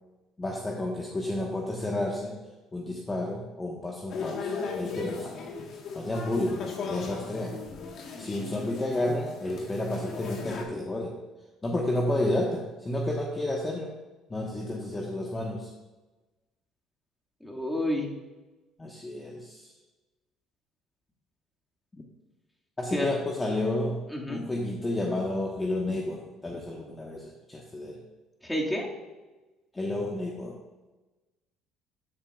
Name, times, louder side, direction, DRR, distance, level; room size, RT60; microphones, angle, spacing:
voice 1, 0.4-2.4 2.7-5.4 5.9-7.6 8.2-11.2 11.6-13.9 14.3-15.7 18.8-19.7 22.8-24.0 24.3-28.0 29.7-30.5, left 1 dB, 20° left, -1 dB, 1.2 m, -31 dB
sound 1, 4.1-10.6, left 4 dB, 55° left, 1.3 m, -37 dB
voice 2, 17.4-18.1 22.9-23.3 24.1-24.5 28.4-28.9, left 1 dB, 5° left, -1 dB, 2.0 m, -30 dB
12.5 x 7.4 x 2.4 m, 1.2 s
hypercardioid pair, 70°, 0 cm